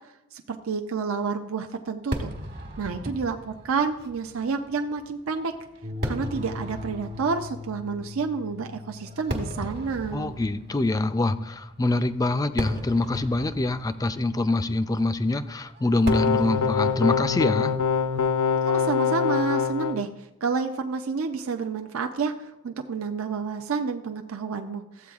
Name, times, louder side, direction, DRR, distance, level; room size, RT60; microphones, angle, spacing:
voice 1, 0.3-2.3 2.8-5.5 6.0-10.3 18.6-25.1, right 5 dB, 75° right, 5 dB, 0.5 m, -29 dB
Fireworks, 2.1-19.4, equal, 50° right, 1.3 m, -38 dB
sound 1, 5.8-12.9, left 4 dB, 30° right, 0.7 m, -42 dB
voice 2, 10.1-17.7, left 2 dB, 15° left, 12 dB, 0.3 m, -25 dB
sound 2, 16.1-20.0, left 6 dB, 90° left, 0.6 m, -24 dB
14.5 x 8.3 x 2.4 m, 0.92 s
head